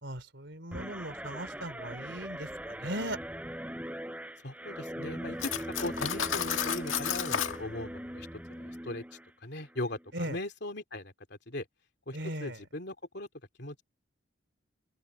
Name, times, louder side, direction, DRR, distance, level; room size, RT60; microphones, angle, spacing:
voice 1, 0.0-3.2 10.1-10.4 12.1-12.6, right 1 dB, 60° right, 4.2 m, -38 dB
Guitar, 0.7-9.3 9.7-10.0, equal, 5° right, 6.2 m, -40 dB
voice 2, 4.4-9.0 9.4-11.6 12.1-13.3 13.6-13.8, left 1 dB, 55° left, 3.1 m, -39 dB
Cutlery silverware, 5.4-7.6, left 8 dB, 80° left, 2.0 m, -32 dB
open air
head